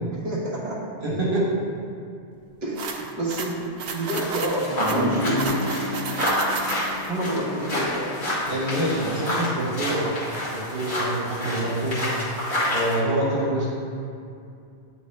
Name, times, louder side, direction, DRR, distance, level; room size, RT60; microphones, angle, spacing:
voice 1, 0.2-0.8 2.6-5.6 7.1-8.1, right 1 dB, 15° right, -7 dB, 1.1 m, -28 dB
voice 2, 1.0-1.5 8.5-10.1 10.4-12.0 12.7-13.8, right 1 dB, 55° right, -5 dB, 1.2 m, -26 dB
sound 1, 2.8-7.1, right 5 dB, 75° right, 0.9 m, -33 dB
sound 2, 4.1-12.9, equal, 50° left, 1.8 m, -29 dB
sound 3, 4.7-11.2, equal, 35° right, 1.7 m, -33 dB
9.5 x 3.3 x 3.2 m, 2.4 s
omnidirectional pair, 1.1 m